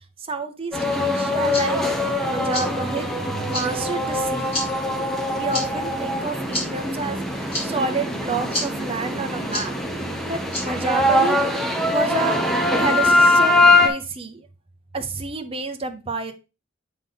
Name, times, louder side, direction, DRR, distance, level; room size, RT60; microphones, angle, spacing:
voice 1, 0.3-1.8 2.3-3.1 3.4-4.5 5.4-9.7 10.3-12.4 12.8-14.5 14.9-16.3, right 3 dB, 30° right, 6 dB, 0.8 m, -29 dB
sound 1, 0.7-13.9, left 2 dB, ahead, 0.9 m, -22 dB
sound 2, 1.2-11.4, left 1 dB, 30° left, 3.0 m, -35 dB
8.1 x 3.7 x 3.8 m, 0.29 s
head